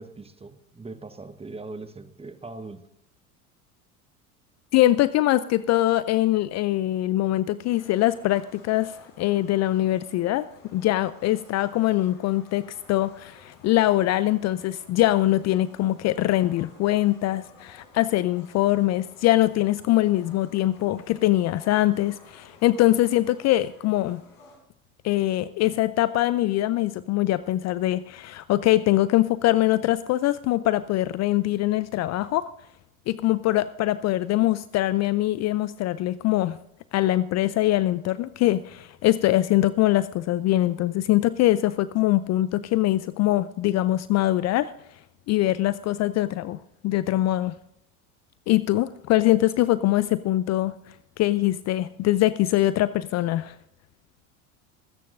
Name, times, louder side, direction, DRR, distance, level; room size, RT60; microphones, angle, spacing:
voice 1, 0.0-2.8, right 3 dB, 15° right, 10 dB, 1.1 m, -40 dB
voice 2, 4.7-10.5 10.7-24.2 25.0-32.5 33.1-36.6 36.9-44.7 45.3-47.6 48.5-50.7 51.2-53.5, left 15 dB, 40° left, 16 dB, 0.5 m, -23 dB
sound 1, 7.6-24.6, left 3 dB, 55° left, 4.6 m, -54 dB
25.5 x 9.4 x 2.6 m, 0.82 s
hypercardioid pair, 75°, 42 cm